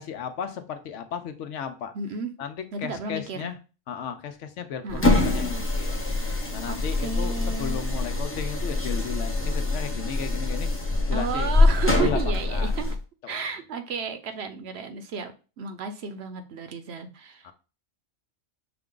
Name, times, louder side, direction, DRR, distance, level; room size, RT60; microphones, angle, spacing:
voice 1, 0.0-1.9 2.4-3.6 3.9-6.0 6.5-11.5 12.0-12.8 13.2-13.4 17.4-17.5, left 8 dB, 75° left, 8 dB, 1.0 m, -35 dB
voice 2, 1.9-2.3 2.7-3.5 4.8-5.2 6.7-7.8 11.1-12.9 13.3-17.5, right 5 dB, 65° right, 8 dB, 0.8 m, -33 dB
sound 1, 4.9-13.0, left 2 dB, 15° left, 0.6 m, -24 dB
5.8 x 2.4 x 3.7 m, 0.33 s
omnidirectional pair, 1.3 m